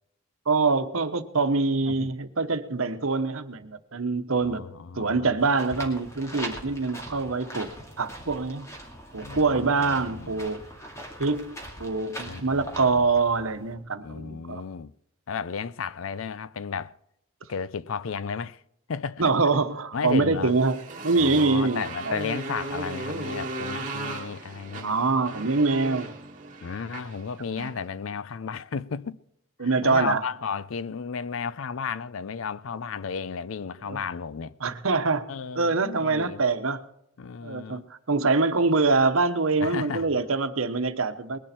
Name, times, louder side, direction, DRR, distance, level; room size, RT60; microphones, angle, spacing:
voice 1, 0.5-4.6 4.9-7.7 8.0-8.7 9.1-10.6 11.2-14.6 19.2-22.2 24.8-26.1 27.6-27.7 29.6-30.2 33.9-34.0 34.6-35.3 35.5-36.8 37.4-41.4, right 3 dB, 85° right, 1.1 m, -25 dB
voice 2, 1.8-2.1 4.3-5.3 9.2-10.4 12.2-13.0 14.0-14.9 15.3-17.0 17.5-18.6 18.9-19.2 19.9-20.5 21.2-24.9 26.6-29.2 29.6-34.6 35.3-36.4 37.2-37.9 39.6-40.2, left 6 dB, 80° left, 0.5 m, -34 dB
sound 1, 5.4-13.7, equal, 15° left, 2.2 m, -41 dB
Motorcycle, 20.4-27.8, right 2 dB, 40° right, 2.2 m, -36 dB
20.5 x 11.0 x 4.4 m
head